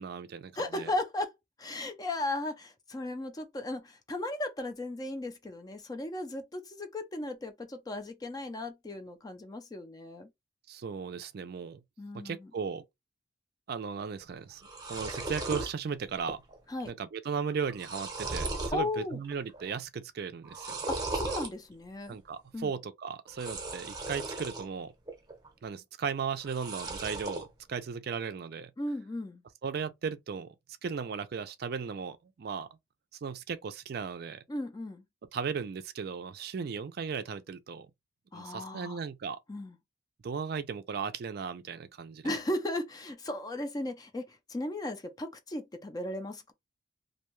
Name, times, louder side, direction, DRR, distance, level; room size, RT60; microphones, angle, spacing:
voice 1, 0.0-0.9 10.7-11.8 12.1-12.8 13.7-16.4 16.8-20.8 22.1-24.9 25.6-28.7 29.6-30.5 30.8-32.7 33.2-34.4 35.3-37.9 38.3-39.4 40.2-42.4, right 6 dB, 55° right, 0.4 m, -36 dB
voice 2, 0.6-1.3 1.6-10.3 12.0-12.5 16.7-16.9 18.7-19.2 20.9-22.2 22.5-22.7 28.8-29.4 34.5-35.0 38.3-39.0 39.5-39.8 42.2-46.5, left 1 dB, 20° left, 0.4 m, -36 dB
sound 1, 14.2-14.3 14.5-15.7 16.2-16.6 16.8-16.9 17.5-18.8 19.2-19.7 20.4-21.5 23.3-24.6 25.1-25.7 26.4-27.4, right 2 dB, 20° right, 0.7 m, -37 dB
2.6 x 2.2 x 3.0 m
head